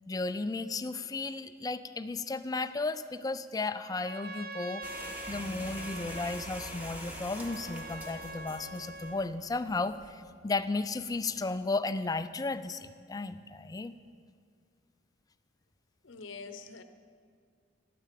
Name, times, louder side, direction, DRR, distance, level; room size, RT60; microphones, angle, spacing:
voice 1, 0.1-4.8 5.3-13.9, left 3 dB, 20° left, 12 dB, 0.4 m, -34 dB
Trumpet, 3.8-9.3, right 2 dB, 50° right, 0.6 m, -44 dB
sound 1, 4.8-10.1, equal, 10° right, 1.3 m, -45 dB
Bass guitar, 5.3-11.5, right 3 dB, 65° right, 0.9 m, -54 dB
voice 2, 16.0-16.8, left 4 dB, 70° left, 8 dB, 0.8 m, -44 dB
12.0 x 9.0 x 7.5 m, 2.1 s
head